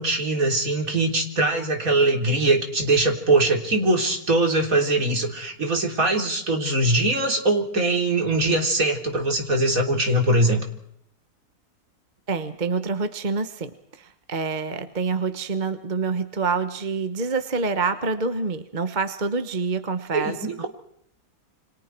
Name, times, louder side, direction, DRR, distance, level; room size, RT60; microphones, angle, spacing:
voice 1, 0.0-10.6 20.1-20.7, right 2 dB, 65° right, 3 dB, 3.9 m, -22 dB
voice 2, 12.3-20.4, right 4 dB, 30° right, 10 dB, 1.3 m, -27 dB
29.0 x 26.0 x 4.6 m, 0.71 s
omnidirectional pair, 1.6 m